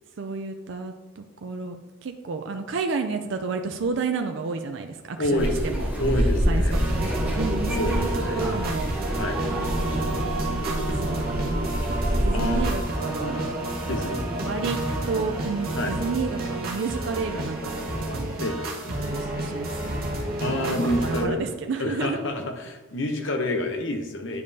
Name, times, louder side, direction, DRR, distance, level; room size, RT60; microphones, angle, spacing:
voice 1, 0.2-1.8 2.0-5.9 6.2-8.9 9.5-10.1 10.5-13.5 14.3-14.8 15.1-17.6 18.1-18.4 19.0-20.1 20.6-22.2, right 4 dB, 60° right, 6 dB, 0.4 m, -31 dB
voice 2, 5.2-5.5 6.0-6.9 7.7-8.5 9.2-9.4 12.3-12.6 13.9-14.3 15.7-15.9 18.4-18.6 20.4-21.4 21.8-24.4, left 1 dB, 60° left, 4 dB, 0.8 m, -28 dB
sound 1, 5.4-12.8, equal, 5° right, 1.0 m, -27 dB
sound 2, 6.7-21.2, right 1 dB, 45° right, 1.2 m, -30 dB
9.3 x 5.2 x 2.7 m, 1.2 s
head